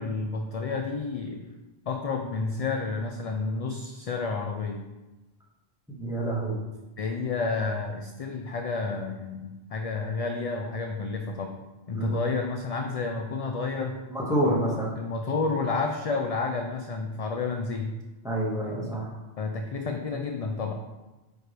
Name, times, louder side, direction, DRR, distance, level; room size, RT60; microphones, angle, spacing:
voice 1, 0.0-1.4 1.9-4.8 7.0-11.6 11.9-14.0 14.4-17.9 18.7-19.0 19.4-20.7, left 4 dB, 50° left, 4 dB, 0.5 m, -30 dB
voice 2, 5.9-6.6 11.9-12.1 14.1-14.9 18.2-19.0, right 1 dB, 5° right, -5 dB, 1.6 m, -27 dB
9.1 x 4.4 x 3.4 m, 1.1 s
omnidirectional pair, 1.1 m